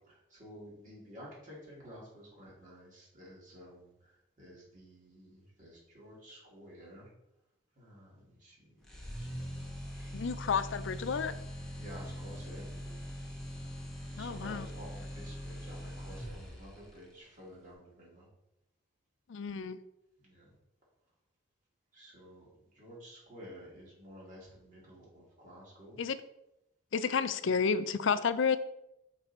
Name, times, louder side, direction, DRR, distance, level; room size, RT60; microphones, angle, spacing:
voice 1, 0.0-7.1 7.7-9.4 9.9-10.3 11.7-13.0 14.1-18.3 20.2-20.5 21.9-26.0, equal, 40° right, -5 dB, 2.6 m, -52 dB
sound 1, 8.9-16.9, equal, 5° left, 1.0 m, -42 dB
voice 2, 10.1-11.3 14.2-14.7 19.3-19.8 26.0-26.2 26.9-28.6, left 6 dB, 75° left, 13 dB, 0.4 m, -31 dB
5.9 x 4.8 x 4.3 m, 0.85 s
head